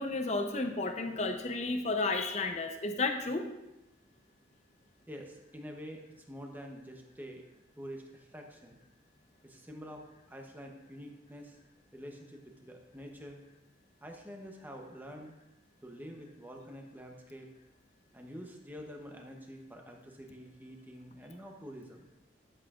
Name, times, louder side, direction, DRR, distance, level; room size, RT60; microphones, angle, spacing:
voice 1, 0.0-3.5, left 3 dB, 35° left, 5 dB, 0.7 m, -32 dB
voice 2, 5.1-7.4 7.8-8.8 9.4-11.6 11.9-13.4 14.0-15.3 15.8-17.5 18.1-22.1, equal, 10° right, 2 dB, 0.8 m, -47 dB
11.0 x 7.3 x 2.4 m, 0.96 s
head